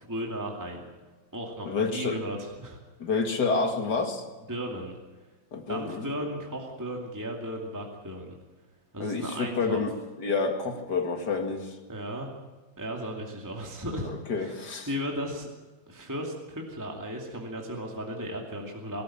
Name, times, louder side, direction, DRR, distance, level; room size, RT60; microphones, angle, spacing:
voice 1, 0.1-0.9 1.3-2.8 4.5-4.9 5.7-8.3 8.9-9.8 11.9-12.3 12.8-14.1 14.4-14.5 14.9-15.5 15.9-19.0, equal, 10° right, 0 dB, 2.4 m, -35 dB
voice 2, 1.6-2.2 3.0-4.2 5.5-6.1 9.0-11.8 14.0-14.9, left 4 dB, 60° left, 5 dB, 2.6 m, -29 dB
22.0 x 14.0 x 8.8 m, 1.3 s
omnidirectional pair, 2.1 m